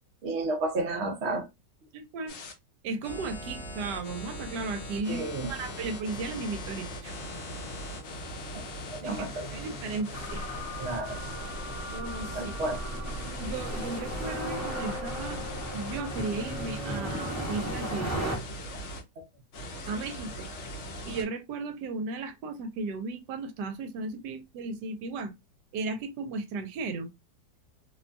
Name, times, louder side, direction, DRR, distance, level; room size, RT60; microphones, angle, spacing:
voice 1, 0.2-1.5 5.1-5.5 8.5-8.6 8.9-9.5 10.8-11.2 12.3-12.8 19.2-19.3, right 2 dB, 55° right, 0.8 m, -32 dB
voice 2, 1.9-2.3 2.8-7.2 9.0-9.2 9.5-10.5 11.9-12.5 13.4-15.5 15.7-18.4 19.9-20.3 21.1-25.3 25.7-27.1, right 3 dB, 75° right, 1.1 m, -35 dB
sound 1, 2.3-2.5 3.0-19.0 19.5-21.2, equal, 60° left, 0.7 m, -40 dB
sound 2, 5.4-18.1, left 1 dB, 30° left, 0.9 m, -44 dB
sound 3, 10.1-18.4, right 1 dB, 15° right, 0.6 m, -37 dB
2.9 x 2.2 x 2.5 m
omnidirectional pair, 1.9 m